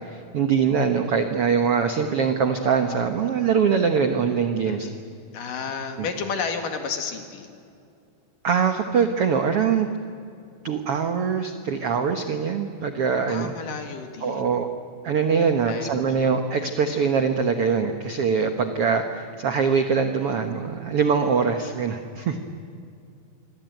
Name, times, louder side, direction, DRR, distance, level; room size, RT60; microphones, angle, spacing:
voice 1, 0.0-4.9 6.0-6.1 8.4-9.9 10.6-13.5 14.2-14.7 15.0-22.4, right 6 dB, 70° right, 6 dB, 1.4 m, -23 dB
voice 2, 4.6-5.0 5.3-7.5 13.3-14.6 15.7-16.3, left 5 dB, 65° left, 5 dB, 3.5 m, -32 dB
26.5 x 23.0 x 9.2 m, 2.4 s
omnidirectional pair, 4.4 m